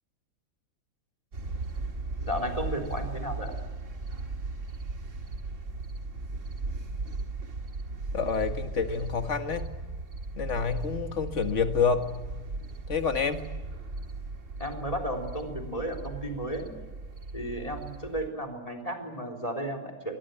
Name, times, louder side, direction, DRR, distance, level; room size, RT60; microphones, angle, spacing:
sound 1, 1.3-18.3, right 3 dB, 35° right, 2.1 m, -37 dB
voice 1, 2.2-3.5 14.6-16.7 17.3-20.2, equal, 15° left, 7 dB, 3.7 m, -33 dB
voice 2, 8.1-9.7 10.4-12.2 12.9-13.4, left 5 dB, 35° left, 8 dB, 1.8 m, -28 dB
23.5 x 22.0 x 9.3 m, 1.2 s
omnidirectional pair, 2.4 m